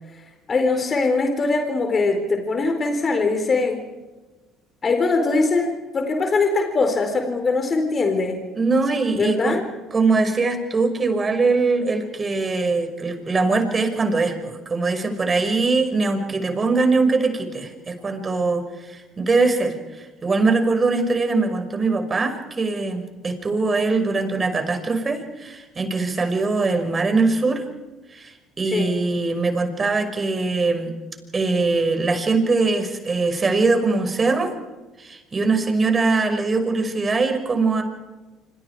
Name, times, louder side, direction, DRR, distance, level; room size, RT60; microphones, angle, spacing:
voice 1, 0.5-3.8 4.8-8.4 9.2-9.6 28.7-28.9, left 3 dB, 40° left, 5 dB, 4.3 m, -21 dB
voice 2, 8.5-9.6 9.9-27.6 28.1-30.9 31.3-34.5 35.0-37.8, right 3 dB, 30° right, 6 dB, 5.9 m, -22 dB
27.5 x 27.0 x 4.9 m, 1.2 s
hypercardioid pair, 60°, 0 cm